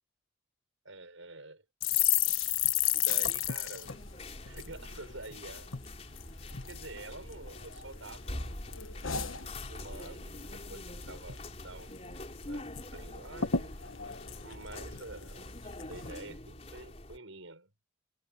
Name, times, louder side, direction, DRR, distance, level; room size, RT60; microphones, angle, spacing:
voice 1, 0.8-1.6 2.9-4.0 4.4-5.8 6.7-8.5 9.5-13.8 14.4-17.7, right 2 dB, 80° right, 7.2 m, -48 dB
sound 1, 1.8-5.3 5.7-5.9 6.2-6.8 7.3-8.1 8.4-10.1 10.4-10.6 10.9-11.4 11.8-11.9 12.2-12.8 13.1-13.2 13.4-15.3 15.8-16.1, left 10 dB, 90° left, 1.3 m, -32 dB
sound 2, 3.8-17.2, left 1 dB, 30° left, 4.2 m, -44 dB
head